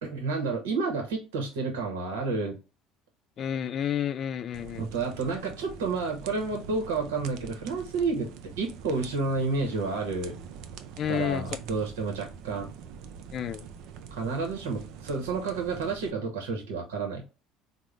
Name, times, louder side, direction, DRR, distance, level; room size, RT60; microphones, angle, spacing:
voice 1, 0.0-2.6 4.8-8.3 8.6-10.4 11.1-12.7 14.1-17.2, right 4 dB, 85° right, 0.8 m, -30 dB
voice 2, 3.4-4.8 11.0-11.5 13.3-13.6, left 9 dB, 45° left, 0.3 m, -30 dB
sound 1, 4.5-16.1, right 7 dB, 70° right, 0.4 m, -45 dB
3.6 x 2.0 x 3.2 m
supercardioid pair, 85°, 0 cm